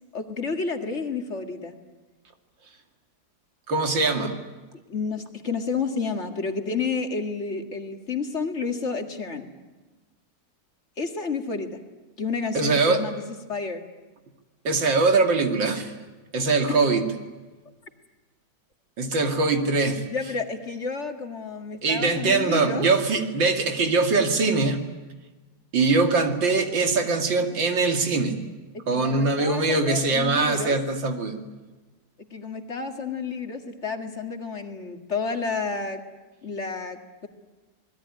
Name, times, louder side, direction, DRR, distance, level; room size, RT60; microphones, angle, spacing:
voice 1, 0.1-1.8 4.2-4.3 4.9-9.5 11.0-11.8 12.2-13.2 13.5-13.8 16.7-16.8 19.6-19.7 20.1-22.9 28.7-30.8 32.3-36.0 36.4-37.3, left 4 dB, 40° left, 5 dB, 2.2 m, -30 dB
voice 2, 3.7-4.3 12.5-13.0 14.6-15.9 16.3-17.0 19.0-20.1 21.8-24.8 25.7-28.4 28.9-31.4, right 3 dB, 80° right, 5 dB, 3.1 m, -22 dB
27.0 x 20.5 x 9.9 m, 1.2 s
omnidirectional pair, 2.0 m